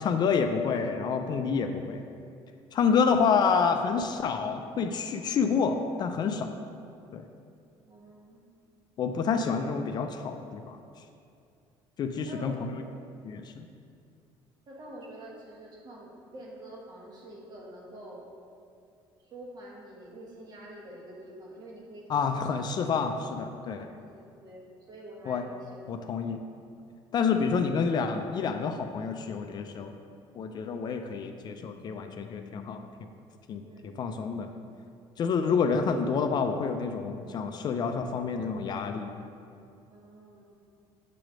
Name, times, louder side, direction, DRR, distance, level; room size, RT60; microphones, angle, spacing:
voice 1, 0.0-2.0 2.7-6.5 7.1-7.3 9.0-10.8 12.0-12.7 13.2-13.7 22.1-23.9 25.3-25.4 25.9-26.4 27.1-30.0 30.3-32.9 33.5-34.5 35.2-39.3, left 5 dB, 45° left, 6 dB, 0.4 m, -28 dB
voice 2, 2.9-3.3 7.8-8.4 12.2-12.9 14.7-18.2 19.2-22.6 24.1-25.8 26.0-26.1 33.6-34.0 35.3-35.5 39.9-40.4, right 1 dB, 45° right, -2 dB, 1.4 m, -47 dB
7.6 x 3.1 x 5.0 m, 2.5 s
cardioid pair, 115°, 10 cm